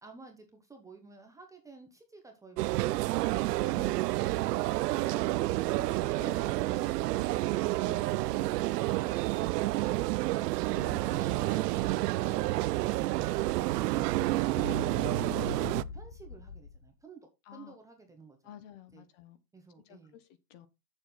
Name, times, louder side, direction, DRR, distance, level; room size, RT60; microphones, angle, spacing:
voice 1, 0.0-3.1 15.7-18.4 18.9-19.0 19.5-20.1, right 3 dB, 5° right, 0.9 m, -53 dB
sound 1, 2.6-15.8, right 18 dB, 75° right, 0.6 m, -29 dB
voice 2, 5.7-7.6 7.8-8.5 10.7-11.6 17.4-17.7 18.4-19.4 19.8-20.7, left 7 dB, 50° left, 1.3 m, -50 dB
Explosion, 11.4-16.9, left 5 dB, 85° left, 1.7 m, -44 dB
8.1 x 7.0 x 4.0 m
supercardioid pair, 155°, 48 cm